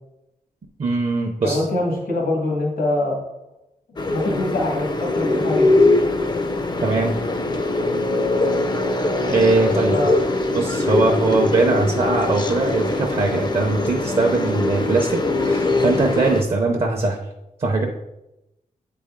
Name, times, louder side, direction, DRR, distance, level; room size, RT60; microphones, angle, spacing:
voice 1, 0.8-1.6 6.8-7.2 9.2-10.0 10.5-17.2 17.6-17.9, right 3 dB, 40° right, 2 dB, 0.6 m, -21 dB
voice 2, 1.4-3.2 4.1-5.8 9.9-10.2, left 2 dB, 80° left, -2 dB, 1.7 m, -23 dB
sound 1, 4.0-16.4, left 2 dB, 30° left, 0.5 m, -22 dB
8.0 x 4.3 x 3.6 m, 0.92 s
wide cardioid pair, 160°, 15 cm